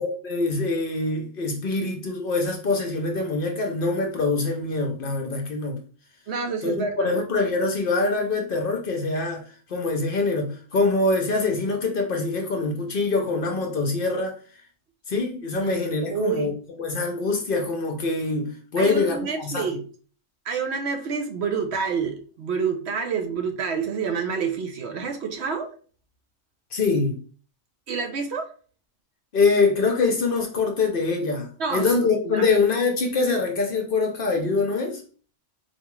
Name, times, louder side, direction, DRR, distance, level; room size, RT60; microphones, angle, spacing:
voice 1, 0.0-5.8 6.6-14.4 15.1-16.5 16.8-19.7 26.7-27.2 29.3-35.0, left 3 dB, 55° left, 0.8 m, -24 dB
voice 2, 6.3-7.1 16.1-16.5 18.8-19.8 20.4-25.7 27.9-28.5 31.6-31.9 32.2-32.5, right 5 dB, 65° right, 0.9 m, -28 dB
4.2 x 2.4 x 3.0 m
omnidirectional pair, 1.3 m